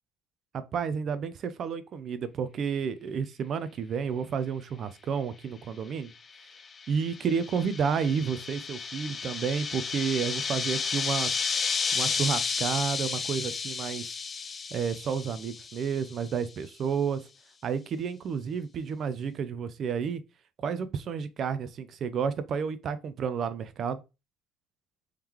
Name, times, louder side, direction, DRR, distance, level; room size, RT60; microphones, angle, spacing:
voice 1, 0.5-6.1 6.9-11.4 11.9-14.1 14.7-17.3 17.6-20.2 20.6-24.0, right 6 dB, 50° right, 0.5 m, -31 dB
sound 1, 6.4-16.2, left 5 dB, 35° left, 0.4 m, -32 dB
3.6 x 3.2 x 2.9 m
supercardioid pair, 85°, 0 cm